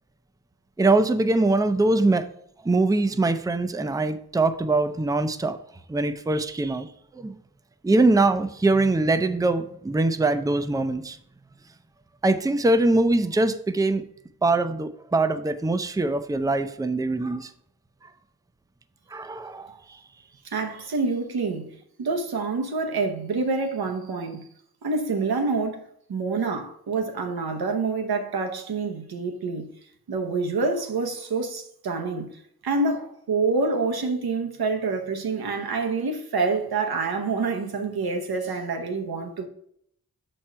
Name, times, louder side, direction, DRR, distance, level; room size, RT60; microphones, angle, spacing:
voice 1, 0.8-2.3 2.6-5.6 5.9-6.9 7.1-7.3 7.8-11.2 12.2-14.0 14.4-17.5 19.1-19.8, right 2 dB, 10° right, 0.5 m, -22 dB
voice 2, 20.4-24.5 24.8-29.7 30.1-32.3 32.6-39.5, right 4 dB, 85° right, 1.0 m, -27 dB
6.3 x 4.5 x 4.5 m
cardioid pair, 55°, 36 cm